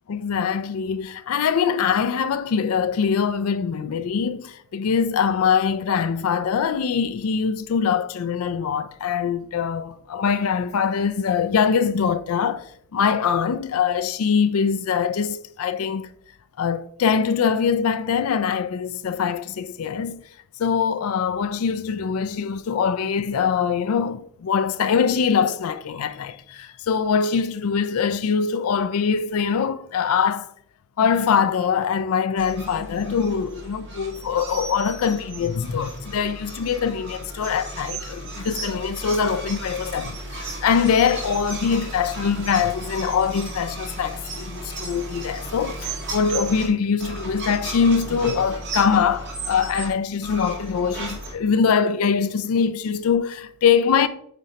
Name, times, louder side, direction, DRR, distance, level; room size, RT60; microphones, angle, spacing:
voice 1, 0.1-12.7 12.9-16.1 16.6-20.2 20.6-30.5 31.0-54.1, left 6 dB, 80° left, 0.4 m, -23 dB
sound 1, 32.4-46.7 47.0-49.9 50.2-51.3, right 2 dB, 55° right, 1.9 m, -34 dB
8.1 x 4.2 x 2.8 m
head